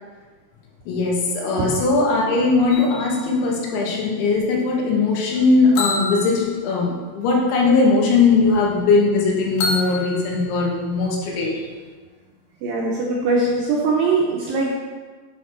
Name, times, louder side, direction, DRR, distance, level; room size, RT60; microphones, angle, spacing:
voice 1, 0.9-11.6, left 3 dB, 90° left, -2 dB, 3.7 m, -19 dB
sound 1, 2.7-4.7 5.8-7.5 9.6-11.1, left 2 dB, 70° left, 3.1 m, -30 dB
voice 2, 12.6-14.7, right 3 dB, 75° right, -4 dB, 2.1 m, -21 dB
7.9 x 6.1 x 4.4 m, 1.5 s
omnidirectional pair, 5.2 m